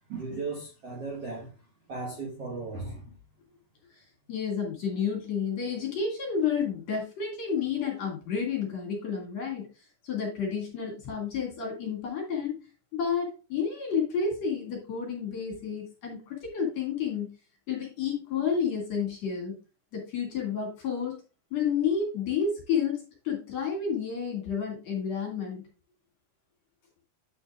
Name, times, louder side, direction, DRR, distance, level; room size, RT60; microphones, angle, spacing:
voice 1, 0.1-3.1, right 3 dB, 85° right, 1.3 m, -37 dB
voice 2, 4.3-9.7 10.0-12.7 12.9-17.3 17.7-19.5 19.9-21.2 21.5-25.6, left 6 dB, 45° left, 2.8 m, -30 dB
9.3 x 7.0 x 2.4 m
omnidirectional pair, 5.2 m